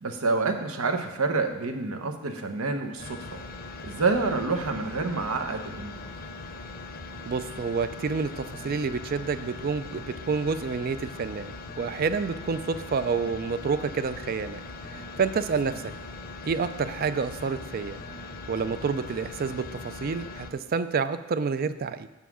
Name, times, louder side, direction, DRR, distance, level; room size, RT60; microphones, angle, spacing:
voice 1, 0.0-3.4 3.8-5.9, right 3 dB, 80° right, 6 dB, 0.9 m, -28 dB
sound 1, 3.0-20.5, left 3 dB, 45° left, 0.6 m, -40 dB
voice 2, 7.3-14.6 14.9-15.8 16.5-18.0 18.5-22.1, right 5 dB, 45° right, 13 dB, 0.3 m, -29 dB
7.0 x 5.6 x 6.2 m, 1.1 s
head